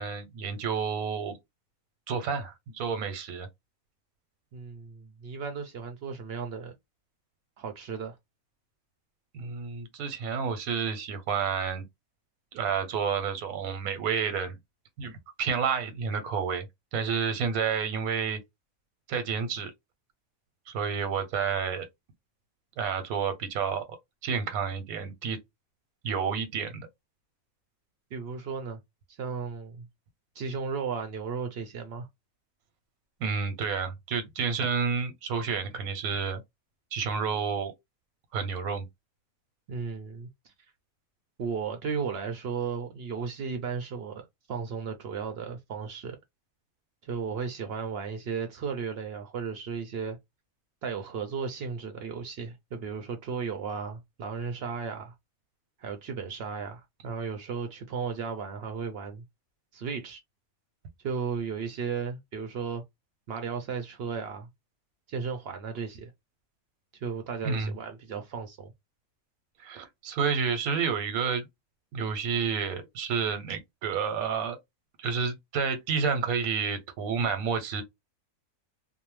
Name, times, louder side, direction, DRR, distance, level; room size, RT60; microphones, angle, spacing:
voice 1, 0.0-1.4 2.1-3.5 9.3-11.8 12.5-14.6 15.0-16.7 16.9-18.4 19.1-19.7 20.7-21.9 22.8-23.8 24.2-25.4 26.0-26.9 33.2-36.4 36.9-37.7 38.3-38.8 67.4-67.8 69.6-71.5 71.9-74.6 75.0-77.8, right 6 dB, 90° right, 1.1 m, -30 dB
voice 2, 4.5-6.7 7.6-8.2 28.1-28.8 29.2-29.9 30.4-32.1 39.7-40.3 41.4-46.2 47.0-50.2 50.8-55.1 55.8-59.2 59.7-60.2 61.0-62.8 63.3-64.5 65.1-66.1 67.0-68.7, right 6 dB, 65° right, 0.6 m, -35 dB
2.7 x 2.0 x 3.0 m
omnidirectional pair, 1.5 m